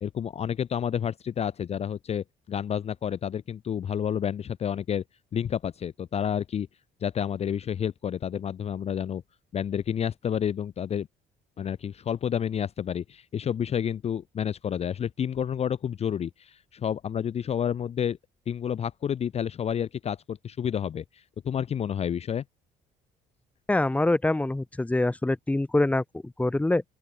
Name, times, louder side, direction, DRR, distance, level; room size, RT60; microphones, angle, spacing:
voice 1, 0.0-5.0 5.3-6.7 7.0-9.2 9.5-11.1 11.6-18.2 18.5-22.4, left 8 dB, 40° left, 0.7 m, -30 dB
voice 2, 23.7-26.8, left 2 dB, 10° left, 1.1 m, -25 dB
open air
cardioid pair, 110°, 17 cm